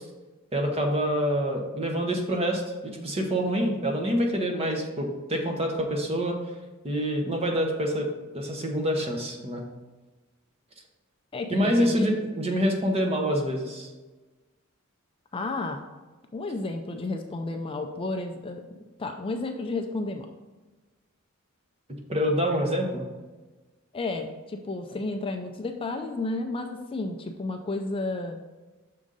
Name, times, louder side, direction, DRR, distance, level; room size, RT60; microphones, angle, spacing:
voice 1, 0.5-6.4 6.8-8.1 8.3-9.6 11.5-13.9 22.1-23.1, equal, 30° right, 2 dB, 0.9 m, -26 dB
voice 2, 11.3-12.1 15.3-15.8 16.3-20.3 23.9-28.4, left 2 dB, 25° left, 5 dB, 0.4 m, -32 dB
6.2 x 3.8 x 5.3 m, 1.2 s
head